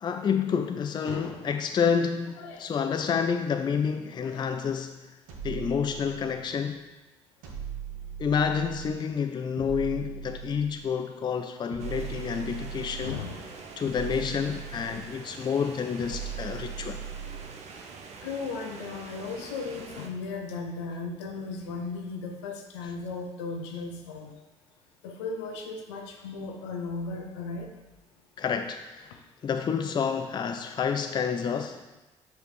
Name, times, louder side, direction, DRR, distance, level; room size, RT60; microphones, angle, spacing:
voice 1, 0.0-5.0 5.4-6.9 8.2-13.2 13.8-17.0 28.4-31.8, left 6 dB, 30° left, 7 dB, 0.4 m, -29 dB
sound 1, 5.3-6.6 7.4-9.1 9.6-11.0 11.7-13.3 13.9-15.3 16.0-17.6, right 8 dB, 65° right, 1.3 m, -39 dB
sound 2, 11.8-20.1, right 5 dB, 45° right, 0.8 m, -45 dB
voice 2, 13.0-13.4 18.2-24.3 25.0-27.7, left 4 dB, 70° left, 3 dB, 0.9 m, -36 dB
8.1 x 5.0 x 3.2 m, 1.1 s
figure-of-eight pair, 50°, 15 cm